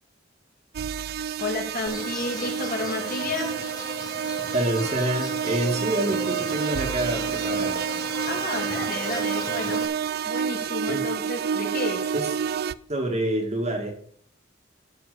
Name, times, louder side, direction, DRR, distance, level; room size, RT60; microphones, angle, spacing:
sound 1, 0.7-12.7, right 7 dB, 55° right, 0.4 m, -29 dB
voice 1, 1.4-3.5 8.2-9.8 10.2-12.0, left 2 dB, 50° left, 1 dB, 2.6 m, -31 dB
Insect, 1.9-9.9, left 2 dB, 20° left, 1.2 m, -37 dB
voice 2, 4.5-7.8 10.9-11.0 12.1-12.3 12.9-13.9, right 1 dB, 35° right, 4 dB, 1.7 m, -27 dB
13.0 x 5.0 x 6.7 m, 0.62 s
head